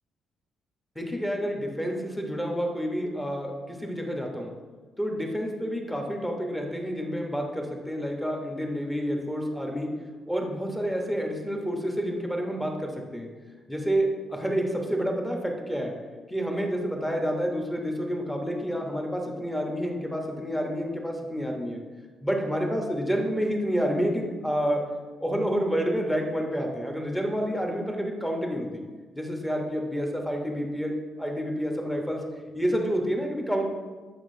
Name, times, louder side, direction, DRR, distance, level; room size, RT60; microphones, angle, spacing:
voice 1, 0.9-4.5 5.0-9.9 10.3-13.3 13.7-15.9 16.3-21.8 22.2-24.8 25.2-28.8 29.1-32.2 32.5-33.6, equal, 5° left, 1 dB, 1.1 m, -29 dB
7.1 x 5.4 x 2.7 m, 1.4 s
cardioid pair, 90°, 0 cm